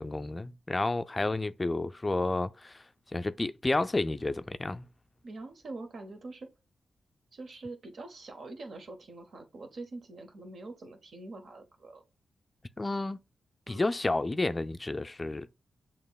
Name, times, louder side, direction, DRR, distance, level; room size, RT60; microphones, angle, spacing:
voice 1, 0.0-2.9 3.1-4.9 12.8-13.2 13.7-15.5, left 2 dB, 25° left, 0.3 m, -31 dB
voice 2, 5.2-6.5 7.3-12.0 13.7-13.9, right 2 dB, 65° right, 0.9 m, -44 dB
6.9 x 2.9 x 2.3 m
cardioid pair, 60°, 0 cm